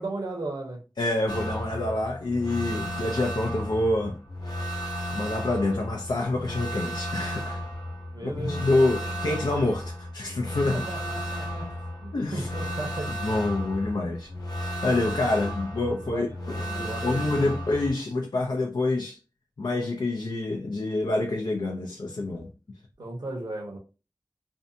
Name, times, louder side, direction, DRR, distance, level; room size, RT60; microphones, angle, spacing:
voice 1, 0.0-0.8 8.1-9.1 10.5-13.2 16.1-17.5 23.0-23.8, right 2 dB, 65° right, 0.8 m, -36 dB
voice 2, 1.0-4.2 4.5-7.6 8.2-10.8 12.1-12.5 13.2-14.3 14.8-19.2 19.6-22.5, left 2 dB, 75° left, 0.4 m, -27 dB
sound 1, 1.3-17.9, equal, 60° left, 0.9 m, -34 dB
2.6 x 2.2 x 2.6 m
wide cardioid pair, 45°, 8 cm